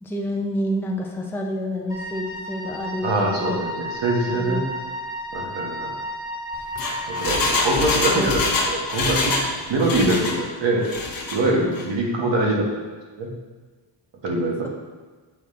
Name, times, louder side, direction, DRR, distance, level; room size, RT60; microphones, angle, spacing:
voice 1, 0.0-3.6 4.3-4.6 8.1-8.3 10.0-10.2 14.6-14.7, equal, 5° left, -1 dB, 0.5 m, -28 dB
Wind instrument woodwind instrument, 1.9-8.2, equal, 30° left, 1.8 m, -33 dB
voice 2, 3.0-4.6 5.3-5.9 7.1-9.4 9.7-10.9 11.3-12.7 13.2-13.3 14.2-14.7, right 1 dB, 70° right, -1 dB, 1.5 m, -23 dB
Engine, 6.5-9.5 9.8-10.4 10.8-11.4 11.7-11.8, left 3 dB, 50° left, 1.1 m, -24 dB
7.4 x 3.9 x 4.2 m, 1.4 s
wide cardioid pair, 140°, 45 cm